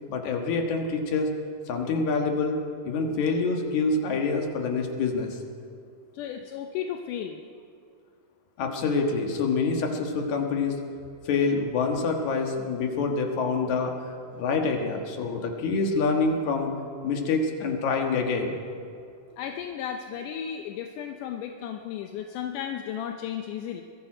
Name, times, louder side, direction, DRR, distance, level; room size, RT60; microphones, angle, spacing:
voice 1, 0.1-1.3 1.7-2.6 2.8-5.4 8.6-10.8 11.3-13.9 14.3-16.7 17.0-18.5, left 4 dB, 70° left, 2 dB, 2.8 m, -26 dB
voice 2, 6.1-7.4 19.4-23.8, left 9 dB, 85° left, 5 dB, 2.2 m, -34 dB
21.0 x 13.0 x 4.9 m, 2.4 s
omnidirectional pair, 3.6 m